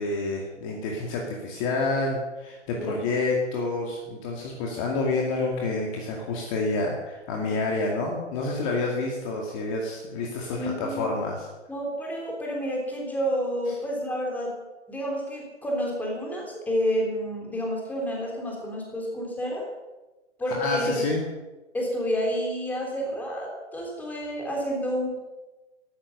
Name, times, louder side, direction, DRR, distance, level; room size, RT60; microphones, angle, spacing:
voice 1, 0.0-11.5 20.5-21.2, left 3 dB, 30° left, 0 dB, 2.3 m, -28 dB
voice 2, 10.6-11.2 11.7-14.6 14.9-19.7 20.4-21.1 21.7-25.2, equal, 5° left, -1 dB, 3.4 m, -29 dB
14.5 x 12.0 x 6.6 m, 1.1 s
figure-of-eight pair, 130°, 36 cm